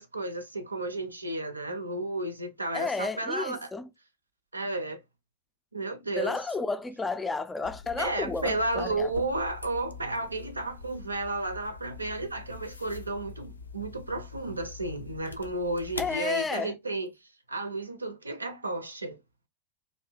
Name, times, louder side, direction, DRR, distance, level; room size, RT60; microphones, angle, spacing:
voice 1, 0.0-3.7 4.5-5.0 5.7-6.4 8.0-17.1 17.5-19.2, right 2 dB, 80° right, 0.5 m, -32 dB
voice 2, 2.7-3.9 6.2-9.1 16.0-16.7, left 4 dB, 10° left, 0.3 m, -32 dB
sound 1, 7.6-16.2, left 4 dB, 80° left, 0.4 m, -44 dB
2.7 x 2.6 x 3.2 m
figure-of-eight pair, 90°, 0 cm